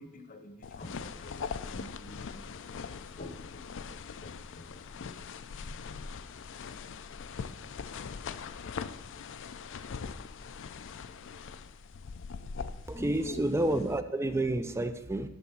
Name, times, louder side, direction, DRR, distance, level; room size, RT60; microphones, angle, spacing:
voice 1, 0.0-4.7 13.0-13.4, left 2 dB, 35° left, 8 dB, 0.8 m, -48 dB
sound 1, 0.6-14.0, left 5 dB, 55° left, 0.4 m, -42 dB
voice 2, 12.9-15.3, right 1 dB, 10° right, 10 dB, 0.4 m, -29 dB
10.5 x 3.9 x 7.0 m, 0.97 s
head